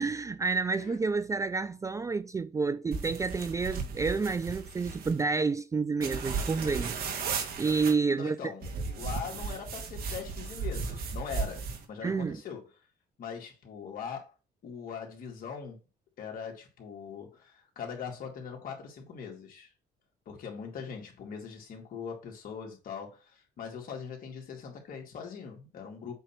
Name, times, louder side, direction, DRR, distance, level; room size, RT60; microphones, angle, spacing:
voice 1, 0.0-7.0 7.6-8.5 12.0-12.4, right 4 dB, 20° right, 0.3 m, -29 dB
sound 1, 2.9-5.2 6.0-7.9 8.6-11.8, right 5 dB, 60° right, 1.6 m, -35 dB
voice 2, 8.1-8.7 9.0-11.6 11.9-12.6 13.2-14.3 14.6-15.8 16.2-19.7 20.3-26.1, left 6 dB, 55° left, 2.3 m, -41 dB
8.0 x 2.9 x 5.8 m
cardioid pair, 110°, 17 cm